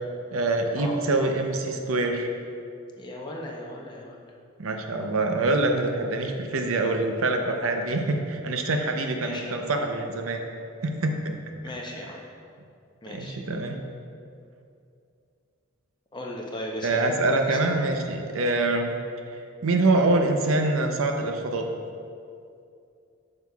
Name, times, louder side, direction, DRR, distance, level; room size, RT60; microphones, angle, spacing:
voice 1, 0.3-2.3 4.6-10.4 10.8-11.4 13.1-13.8 16.8-18.9 19.6-21.7, right 2 dB, 85° right, 4 dB, 0.6 m, -25 dB
voice 2, 3.0-4.2 9.1-9.6 11.6-12.2 13.0-13.4 16.1-17.9, left 1 dB, 20° left, -1 dB, 0.7 m, -37 dB
8.3 x 6.6 x 2.3 m, 2.5 s
head